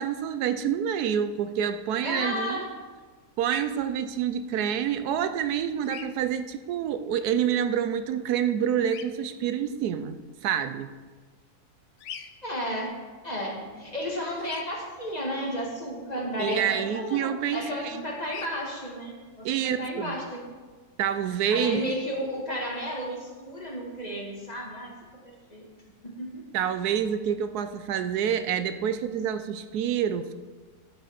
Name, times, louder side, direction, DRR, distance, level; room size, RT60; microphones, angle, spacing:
voice 1, 0.0-2.6 3.4-10.9 16.4-18.1 19.4-20.2 21.0-21.8 26.5-30.3, right 9 dB, 80° right, 11 dB, 1.1 m, -27 dB
voice 2, 2.0-2.7 12.4-20.4 21.5-24.9 25.5-25.7 26.0-26.5, equal, 25° left, -2 dB, 1.8 m, -33 dB
Bird vocalization bird call bird song, 3.4-3.7 5.8-6.1 8.8-9.1 12.0-12.3 14.4-14.6 16.4-16.7 18.2-18.5 21.7-22.0, left 8 dB, 60° left, 0.8 m, -41 dB
11.5 x 5.9 x 5.7 m, 1.4 s
omnidirectional pair, 1.7 m